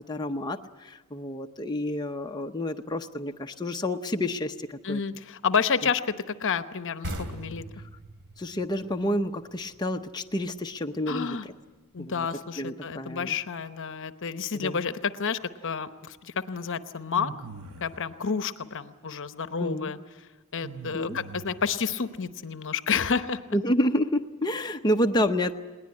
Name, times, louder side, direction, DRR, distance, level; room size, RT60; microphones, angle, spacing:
voice 1, 0.1-5.0 8.4-11.5 12.0-12.3 12.6-13.3 14.5-14.9 19.6-19.9 20.9-21.2 23.5-25.7, left 1 dB, 20° left, 4 dB, 0.7 m, -29 dB
voice 2, 4.8-7.6 11.1-11.4 11.9-17.3 17.8-20.0 20.5-23.6, left 6 dB, 60° left, 11 dB, 0.9 m, -30 dB
sound 1, 7.0-10.4, equal, 55° right, 2.8 m, -39 dB
sound 2, 17.1-18.0 20.6-21.8, right 4 dB, 70° right, 1.3 m, -42 dB
21.0 x 19.0 x 9.7 m, 1.2 s
head